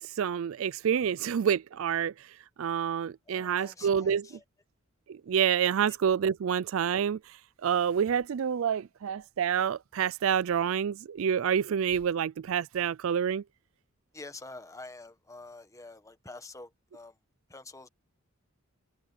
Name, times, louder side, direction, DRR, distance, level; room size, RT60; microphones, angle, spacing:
voice 1, 0.0-4.3 5.1-13.4, right 8 dB, 65° right, 0.4 m, -28 dB
voice 2, 3.3-4.4 5.8-6.0 14.1-17.1 17.5-17.9, left 2 dB, 15° left, 1.3 m, -47 dB
head